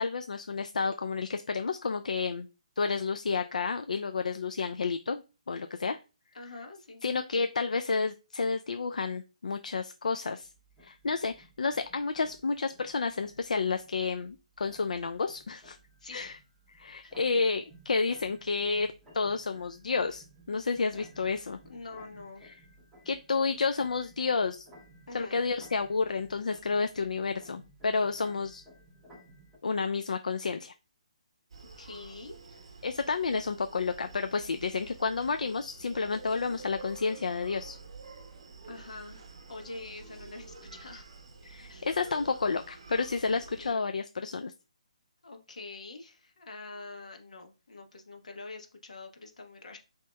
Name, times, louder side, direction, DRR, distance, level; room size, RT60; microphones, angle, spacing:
voice 1, 0.0-2.5 2.8-6.0 7.0-10.5 10.8-15.8 16.1-16.3 16.7-21.6 23.1-24.7 25.1-28.6 29.6-30.7 32.8-37.8 41.4-44.5, left 4 dB, 85° left, 8 dB, 0.3 m, -30 dB
voice 2, 6.3-7.0 16.0-16.4 17.0-17.2 21.6-22.5 25.1-25.4 31.8-32.7 38.7-41.1 41.7-41.9 43.6-43.8 45.2-49.8, left 3 dB, 70° left, 4 dB, 1.2 m, -45 dB
sound 1, 10.4-29.6, equal, 5° right, 0.6 m, -57 dB
Screaming, 31.5-43.7, right 4 dB, 45° right, 0.7 m, -49 dB
6.1 x 2.9 x 2.2 m, 0.30 s
hypercardioid pair, 175°, 4 cm